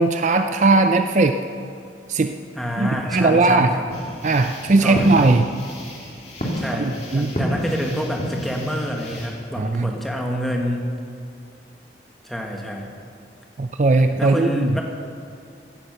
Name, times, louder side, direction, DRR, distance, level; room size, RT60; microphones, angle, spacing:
voice 1, 0.0-1.4 2.1-2.3 2.8-3.7 4.2-5.5 6.8-7.3 9.6-9.9 13.6-14.7, right 3 dB, 40° right, 7 dB, 0.4 m, -18 dB
voice 2, 2.5-3.9 4.8-5.1 6.6-10.8 12.2-12.9 14.2-14.8, equal, ahead, 0 dB, 1.5 m, -27 dB
sound 1, 3.9-9.3, equal, 35° left, 2.7 m, -30 dB
16.5 x 10.0 x 6.8 m, 2.4 s
head